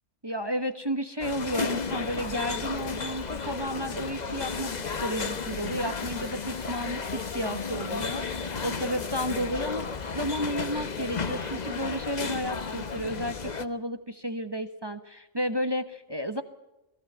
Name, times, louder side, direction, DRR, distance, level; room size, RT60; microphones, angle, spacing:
voice 1, 0.2-16.4, equal, 20° right, 9 dB, 1.1 m, -32 dB
sound 1, 1.2-13.6, left 5 dB, 35° left, 1.0 m, -33 dB
Water tap faucet / Bathtub (filling or washing) / Fill (with liquid), 1.7-13.4, left 5 dB, 60° left, 1.8 m, -48 dB
21.5 x 16.0 x 8.1 m, 0.97 s
omnidirectional pair, 1.4 m